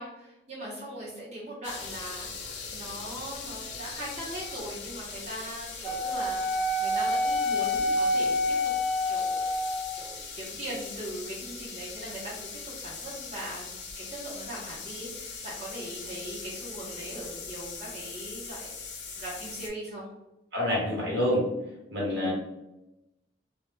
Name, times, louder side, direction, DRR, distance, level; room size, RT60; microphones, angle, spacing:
voice 1, 0.0-8.7 9.1-9.5 9.9-18.7 19.1-20.1 22.1-22.3, right 1 dB, 35° right, -7 dB, 0.7 m, -40 dB
sound 1, 1.6-19.7, left 5 dB, 70° left, 0.5 m, -40 dB
Wind instrument woodwind instrument, 5.8-10.0, left 1 dB, 5° left, 0.5 m, -27 dB
voice 2, 20.5-21.4 21.9-22.3, left 1 dB, 70° right, -4 dB, 1.0 m, -27 dB
2.1 x 2.1 x 2.9 m, 0.93 s
head